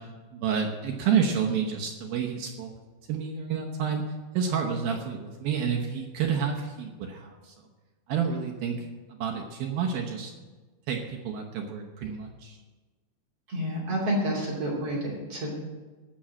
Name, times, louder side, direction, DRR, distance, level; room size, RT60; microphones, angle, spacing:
voice 1, 0.0-2.7 3.1-4.0 4.3-7.5 8.1-8.8 9.1-10.3 10.9-12.6, right 7 dB, 75° right, 2 dB, 2.2 m, -29 dB
voice 2, 13.5-15.6, equal, 35° right, -4 dB, 3.3 m, -29 dB
16.0 x 6.2 x 7.6 m, 1.3 s
omnidirectional pair, 5.4 m